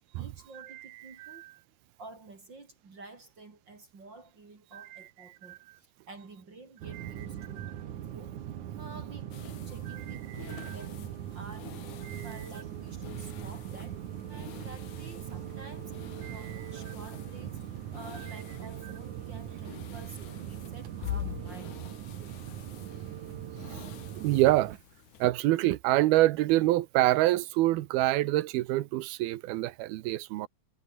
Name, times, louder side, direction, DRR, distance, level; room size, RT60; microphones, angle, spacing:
voice 1, 0.1-1.4 2.0-7.8 8.1-8.4 8.8-11.7 12.2-14.0 14.3-17.6 17.9-21.8, right 3 dB, 30° right, 3.2 m, -50 dB
voice 2, 1.2-1.5 4.7-5.1 5.5-5.6 6.9-7.0 7.6-7.7 9.9-10.0 10.5-10.7 12.1-12.3 16.2-16.4 24.2-24.8 25.2-30.5, right 16 dB, 90° right, 2.8 m, -26 dB
sound 1, 6.8-24.8, right 10 dB, 60° right, 2.7 m, -40 dB
sound 2, 9.3-25.3, left 12 dB, 65° left, 2.4 m, -46 dB
omnidirectional pair, 4.4 m